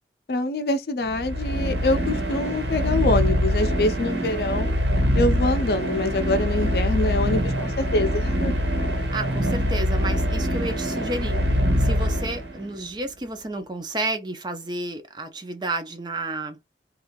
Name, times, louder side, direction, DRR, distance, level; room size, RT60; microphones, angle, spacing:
voice 1, 0.3-4.7 5.1-8.5, left 2 dB, 60° left, 0.5 m, -25 dB
sound 1, 1.0-12.8, equal, 85° right, 1.2 m, -24 dB
voice 2, 9.1-11.4 11.8-16.6, right 2 dB, 25° right, 0.5 m, -31 dB
2.6 x 2.4 x 3.0 m
head